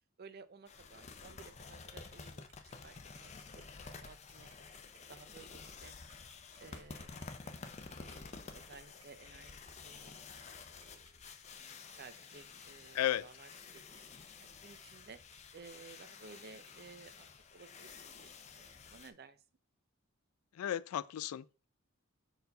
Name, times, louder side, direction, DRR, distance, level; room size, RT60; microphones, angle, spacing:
voice 1, 0.2-2.5 2.8-4.5 5.1-6.0 6.6-7.6 8.0-11.1 11.5-13.8 14.4-15.2 15.5-19.4, right 4 dB, 45° right, 0.5 m, -56 dB
sound 1, 0.7-19.1, left 4 dB, 30° left, 0.5 m, -51 dB
Tick-tock, 1.6-16.7, right 7 dB, 80° right, 1.1 m, -65 dB
voice 2, 20.6-21.7, left 11 dB, 85° left, 0.3 m, -34 dB
4.6 x 4.0 x 5.2 m
head